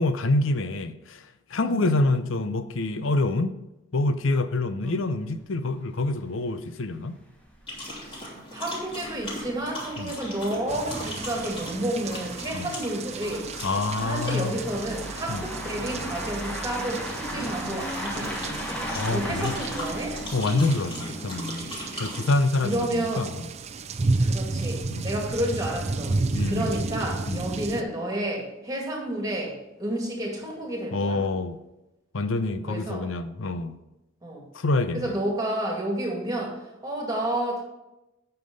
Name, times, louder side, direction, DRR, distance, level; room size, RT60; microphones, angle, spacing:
voice 1, 0.0-3.5 3.9-7.1 10.0-10.1 12.5-12.7 13.6-14.6 15.3-15.4 18.9-19.6 20.3-21.7 22.0-23.5 24.9-25.1 26.3-26.8 27.3-27.4 30.9-31.6 32.1-33.8 34.5-35.2, left 2 dB, 80° left, 11 dB, 0.6 m, -26 dB
sound 1, 4.9-5.0 5.2-5.3 5.8-5.9 6.2-6.3 6.9-21.3, equal, 5° left, 1.3 m, -38 dB
sound 2, 7.7-22.3, equal, 30° left, 3.0 m, -38 dB
voice 2, 8.1-13.5 13.9-18.8 19.1-20.2 22.6-23.3 24.2-26.2 26.4-31.2 32.7-33.0 34.2-34.4 34.9-37.6, right 1 dB, 20° right, -1 dB, 2.1 m, -30 dB
sound 3, 10.7-27.8, right 3 dB, 35° right, 0.4 m, -33 dB
8.7 x 5.8 x 5.2 m, 0.94 s
head